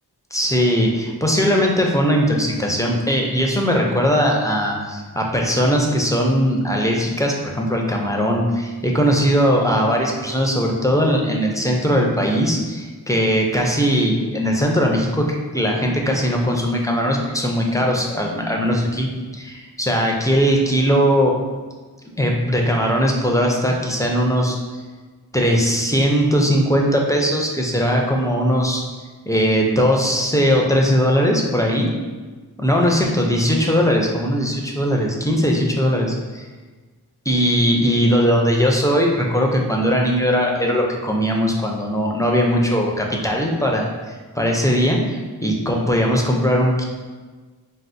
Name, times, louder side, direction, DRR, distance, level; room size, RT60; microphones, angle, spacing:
voice 1, 0.3-15.3 15.5-21.3 22.2-24.6 25.3-28.8 29.3-31.9 32.6-36.5 37.3-46.8, equal, 10° left, -1 dB, 0.4 m, -19 dB
4.1 x 2.0 x 2.5 m, 1.4 s
wide cardioid pair, 55°, 39 cm